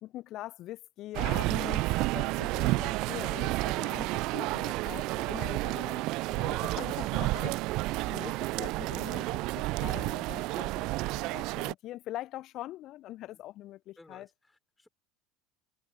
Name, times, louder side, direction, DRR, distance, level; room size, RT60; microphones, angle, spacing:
voice 1, 0.0-14.3, left 15 dB, 45° left, 0.9 m, -43 dB
sound 1, 1.1-11.7, right 21 dB, 50° right, 0.5 m, -31 dB
voice 2, 14.0-14.9, left 2 dB, 10° left, 5.9 m, -55 dB
figure-of-eight pair, 70°, 0 cm